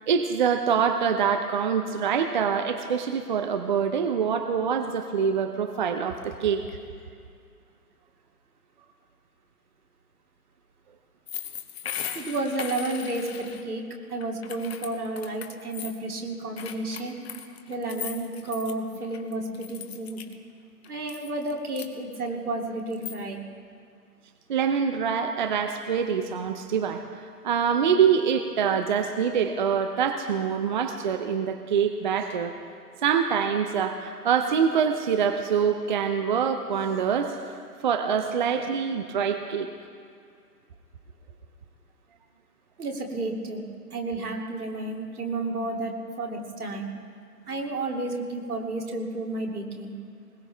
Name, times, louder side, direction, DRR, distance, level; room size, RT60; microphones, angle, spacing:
voice 1, 0.1-6.8 24.5-32.6 33.0-39.7, right 7 dB, 30° right, 7 dB, 0.6 m, -25 dB
sound 1, 11.3-13.6 14.2-16.0 16.6-18.7 19.0-20.3 20.8-21.9 22.7-23.1, left 9 dB, 40° left, 1.2 m, -38 dB
voice 2, 12.1-17.2 17.7-20.2 20.9-23.4 42.8-43.6 43.9-46.9 47.5-49.9, right 2 dB, 70° right, 1 dB, 2.8 m, -31 dB
21.0 x 20.0 x 3.4 m, 2.3 s
figure-of-eight pair, 130°, 46 cm